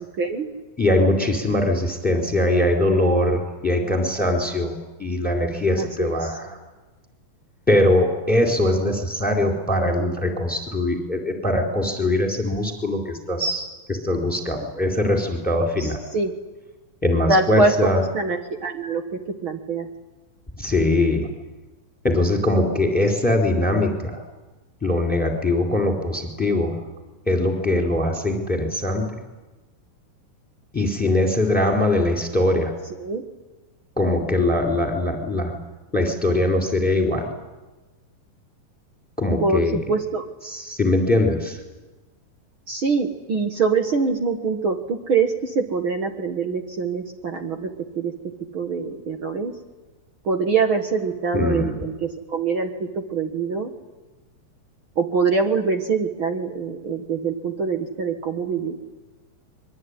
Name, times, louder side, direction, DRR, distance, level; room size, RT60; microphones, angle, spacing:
voice 1, 0.2-0.5 5.8-6.3 15.8-16.3 17.3-19.0 19.4-19.9 33.0-33.2 39.4-39.6 39.9-40.2 42.7-47.7 47.9-48.1 48.5-49.5 50.2-52.7 53.1-53.7 54.9-58.7, right 4 dB, 50° right, 5 dB, 1.7 m, -24 dB
voice 2, 0.8-6.6 7.7-16.0 17.0-18.0 20.6-21.3 22.0-24.2 24.8-26.7 27.3-29.2 30.7-32.7 34.0-35.5 35.9-37.3 39.2-39.8 40.4-41.6 51.3-51.7, left 1 dB, ahead, 2 dB, 3.8 m, -21 dB
25.0 x 23.0 x 9.8 m, 1.1 s
omnidirectional pair, 4.2 m